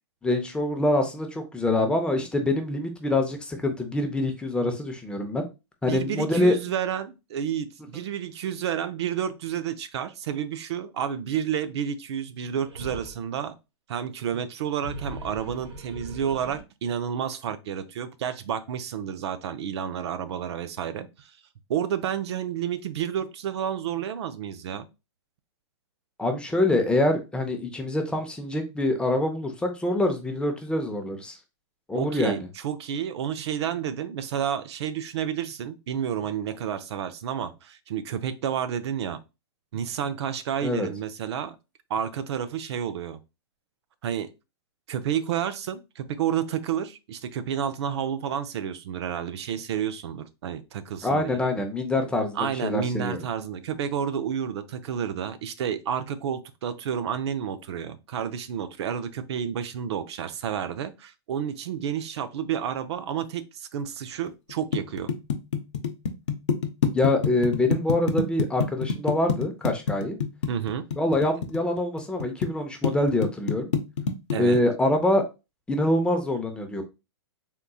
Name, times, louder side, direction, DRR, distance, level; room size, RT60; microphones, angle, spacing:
voice 1, 0.2-5.5 5.8-6.5 26.2-31.4 31.9-32.4 40.6-40.9 51.0-53.2 66.9-70.2 71.0-73.7 74.4-75.2 75.7-76.8, left 1 dB, 5° left, 0.5 m, -25 dB
voice 2, 5.9-7.7 7.9-13.6 13.9-21.3 21.7-24.9 31.9-39.2 39.7-41.6 41.9-43.2 44.0-44.3 44.9-51.4 52.4-65.1 70.5-70.8 74.3-74.6, right 8 dB, 70° right, 0.4 m, -30 dB
sound 1, 12.6-13.2 14.6-16.6, right 1 dB, 85° right, 1.0 m, -40 dB
sound 2, 64.3-72.5 72.8-74.6, left 6 dB, 85° left, 0.6 m, -26 dB
3.6 x 2.7 x 2.3 m
hypercardioid pair, 130°, 15 cm